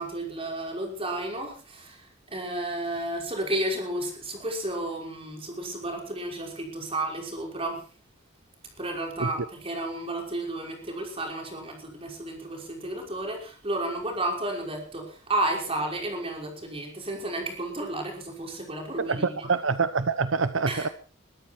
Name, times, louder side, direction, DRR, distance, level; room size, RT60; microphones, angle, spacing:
voice 1, 0.0-7.8 8.8-19.5 20.7-20.9, right 1 dB, 30° right, 5.7 m, -32 dB
voice 2, 19.0-20.9, right 4 dB, 85° right, 0.9 m, -26 dB
22.5 x 13.5 x 4.6 m
head